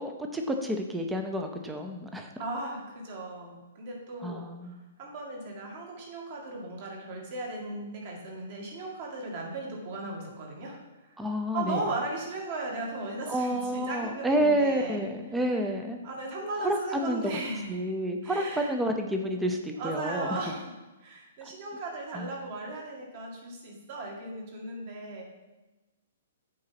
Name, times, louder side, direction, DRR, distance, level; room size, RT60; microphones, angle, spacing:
voice 1, 0.0-2.3 4.2-4.8 11.2-11.8 13.3-16.0 16.6-17.2 17.7-20.4 22.1-22.3, equal, 5° right, 4 dB, 0.6 m, -29 dB
voice 2, 2.4-10.8 11.1-11.2 11.5-15.1 15.5-15.6 16.0-17.8 18.2-18.7 19.8-20.7 21.0-25.3, right 2 dB, 40° right, 0 dB, 2.0 m, -37 dB
7.7 x 4.8 x 5.9 m, 1.1 s
hypercardioid pair, 165°, 0 cm